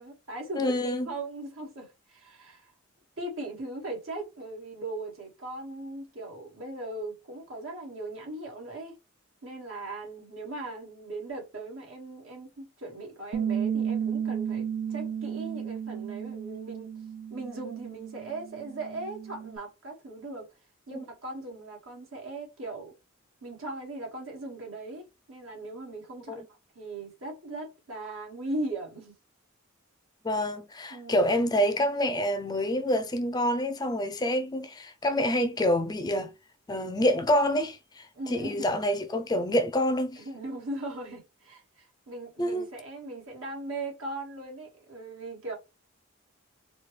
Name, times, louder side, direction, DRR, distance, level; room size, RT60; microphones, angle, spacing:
voice 1, 0.0-2.7 3.2-9.0 9.4-16.9 17.3-20.5 20.9-22.9 23.4-26.4 26.7-29.1 30.9-31.4 38.1-38.8 40.1-45.6, right 2 dB, 80° right, 1.8 m, -39 dB
voice 2, 0.6-1.1 26.3-26.4 30.2-36.3 36.7-40.2 42.4-42.7, equal, 20° left, 0.4 m, -27 dB
Bass guitar, 13.3-19.6, right 8 dB, 60° right, 0.3 m, -33 dB
4.2 x 2.2 x 3.2 m
head